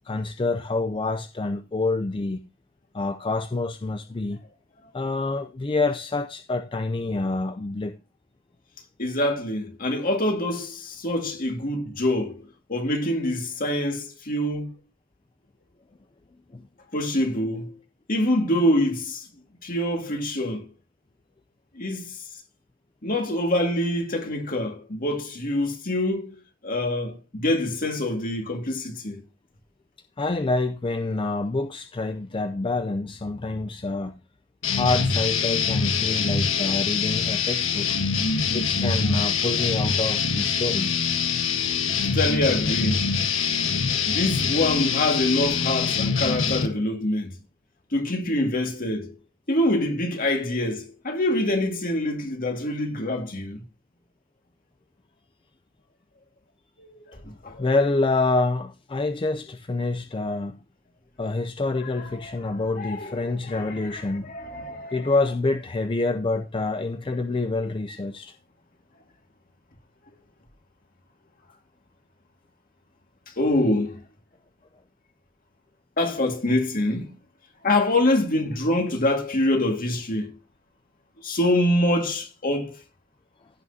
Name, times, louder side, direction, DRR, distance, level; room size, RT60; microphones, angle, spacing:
voice 1, 0.1-2.4 2.9-4.4 4.9-8.0 16.5-16.7 30.2-34.1 34.7-37.9 38.5-40.9 57.6-60.6 61.2-64.2 64.9-68.3, left 3 dB, 25° left, 0.5 m, -27 dB
voice 2, 9.0-12.4 12.7-14.7 16.9-17.7 18.1-19.3 19.6-20.7 21.8-22.1 23.0-26.4 26.6-29.2 42.0-43.1 44.1-47.3 47.9-49.1 49.5-53.6 56.8-56.9 57.2-57.6 62.1-65.1 73.4-74.0 76.0-77.1 77.6-80.3 81.2-82.8, left 1 dB, 45° left, 1.9 m, -25 dB
sound 1, 34.6-46.7, left 5 dB, 80° left, 1.4 m, -24 dB
15.5 x 6.1 x 2.7 m
head